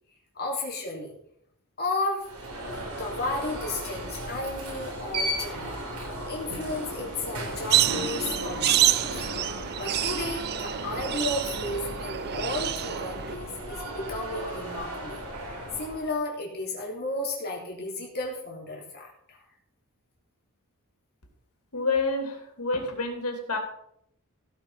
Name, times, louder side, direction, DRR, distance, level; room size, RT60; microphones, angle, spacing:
voice 1, 0.3-1.1 1.8-2.2 3.0-5.8 6.2-9.3 9.8-15.2 15.8-19.4, left 2 dB, 45° left, -2 dB, 3.5 m, -33 dB
Alarm, 2.2-16.1, right 1 dB, 85° right, 4.0 m, -35 dB
sound 1, 7.7-13.3, right 12 dB, 45° right, 0.5 m, -27 dB
voice 2, 21.7-23.6, left 3 dB, 85° left, 3 dB, 3.1 m, -28 dB
16.0 x 5.8 x 5.6 m, 0.74 s
head